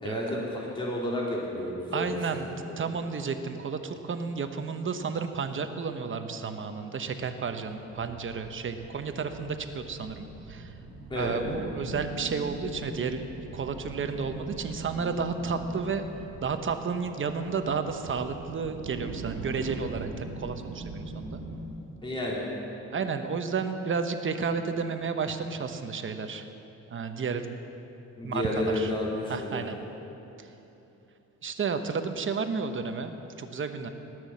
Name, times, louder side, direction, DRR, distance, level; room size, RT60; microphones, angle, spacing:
voice 1, 0.0-2.5 11.1-11.4 22.0-22.4 28.2-29.6, left 1 dB, 15° left, -4 dB, 2.5 m, -31 dB
voice 2, 1.9-2.5 2.8-10.7 11.1-13.2 13.5-16.0 16.4-21.4 22.9-26.4 26.9-27.6 28.2-28.9 29.3-29.8 31.4-33.9, right 5 dB, 40° right, 7 dB, 1.0 m, -32 dB
sound 1, 7.9-21.7, right 2 dB, 75° right, 1.8 m, -41 dB
18.5 x 6.3 x 7.4 m, 2.9 s
cardioid pair, 90°, 30 cm